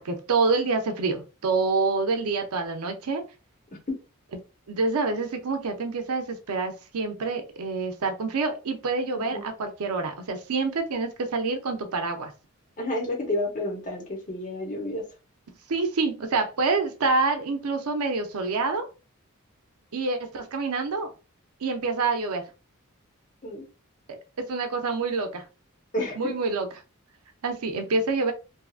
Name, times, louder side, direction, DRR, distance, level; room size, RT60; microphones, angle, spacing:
voice 1, 0.0-3.2 4.7-12.3 15.7-18.9 19.9-21.1 21.6-22.4 24.1-25.4 26.2-26.7 27.4-28.3, right 3 dB, 80° right, 0.6 m, -27 dB
voice 2, 12.8-15.0 23.4-23.7 25.9-26.3, left 1 dB, 35° left, 0.9 m, -30 dB
2.7 x 2.5 x 2.4 m
head